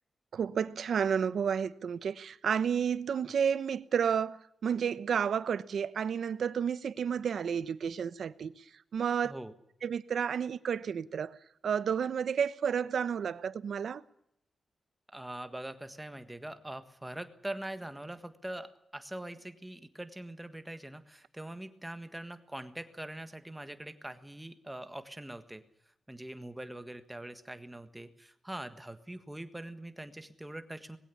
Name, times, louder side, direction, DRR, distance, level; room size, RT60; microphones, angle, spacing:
voice 1, 0.3-8.5 8.9-9.3 9.8-11.3 11.6-14.0, right 7 dB, 65° right, 1.0 m, -31 dB
voice 2, 9.2-9.5 15.1-25.6 26.1-31.0, right 1 dB, 10° right, 1.5 m, -43 dB
21.0 x 16.0 x 9.8 m
wide cardioid pair, 175°, 0 cm